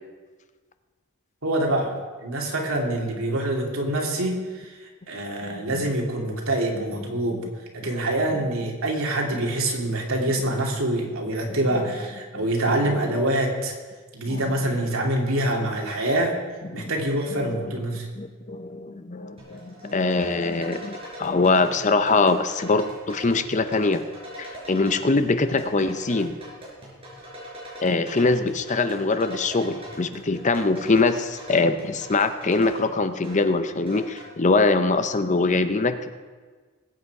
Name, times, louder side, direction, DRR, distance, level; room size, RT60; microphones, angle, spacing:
voice 1, 1.4-1.9 2.2-7.5 7.7-13.7 14.1-16.3 16.7-18.1, right 1 dB, 80° right, 0 dB, 2.7 m, -25 dB
voice 2, 11.5-11.9 12.8-13.0 14.3-14.4 16.7-16.9 17.4-17.7 18.2-24.0 24.4-26.3 27.8-36.1, left 3 dB, 35° left, 10 dB, 0.6 m, -23 dB
sound 1, 19.4-34.3, equal, 25° right, 4.9 m, -41 dB
21.0 x 8.5 x 4.8 m, 1.4 s
head